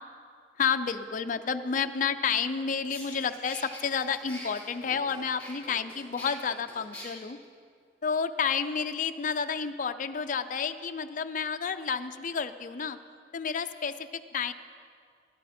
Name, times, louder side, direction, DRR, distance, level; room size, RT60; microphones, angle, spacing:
voice 1, 0.6-7.4 8.0-13.0 13.3-14.5, left 6 dB, 50° left, 9 dB, 0.5 m, -30 dB
sound 1, 2.9-7.1, left 1 dB, 10° left, 4.7 m, -44 dB
19.0 x 11.5 x 4.3 m, 2.1 s
head